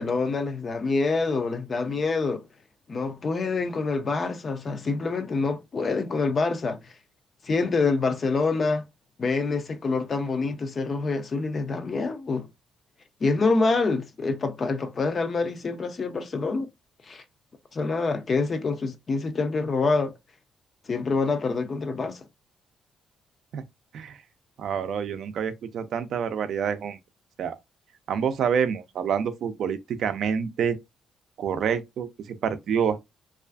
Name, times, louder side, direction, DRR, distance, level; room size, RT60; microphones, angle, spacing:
voice 1, 0.0-2.4 2.9-6.9 7.4-8.9 9.2-12.5 13.2-16.7 17.1-17.2 17.7-20.1 20.9-22.2, left 4 dB, 40° left, 0.4 m, -26 dB
voice 2, 24.6-27.0 27.4-27.6 28.1-30.8 31.4-33.0, right 7 dB, 70° right, 0.4 m, -27 dB
2.4 x 2.3 x 2.2 m
cardioid pair, 90°, 0 cm